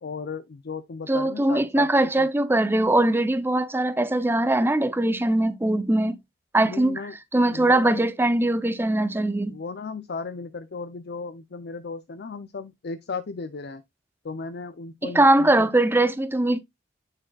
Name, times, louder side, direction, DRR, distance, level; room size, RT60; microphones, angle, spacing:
voice 1, 0.0-2.3 6.6-7.2 7.5-8.0 9.5-13.8 14.2-15.7, left 4 dB, 55° left, 0.5 m, -35 dB
voice 2, 1.1-6.2 6.5-7.0 7.3-9.6 15.0-16.6, right 1 dB, 10° right, 0.6 m, -21 dB
8.8 x 6.4 x 2.3 m
head